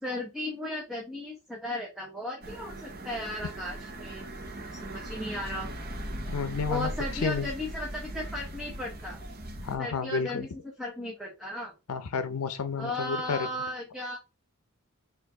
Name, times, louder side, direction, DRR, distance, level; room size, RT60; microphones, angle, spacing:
voice 1, 0.0-4.3 4.7-5.7 6.7-9.2 9.8-10.5 10.8-11.7 12.8-14.2, left 1 dB, ahead, 0.8 m, -35 dB
sound 1, 2.4-9.8, right 1 dB, 45° right, 0.9 m, -39 dB
voice 2, 6.3-6.9 7.2-7.5 9.6-10.5 11.9-13.4, left 6 dB, 85° left, 0.6 m, -31 dB
4.5 x 2.6 x 3.8 m
head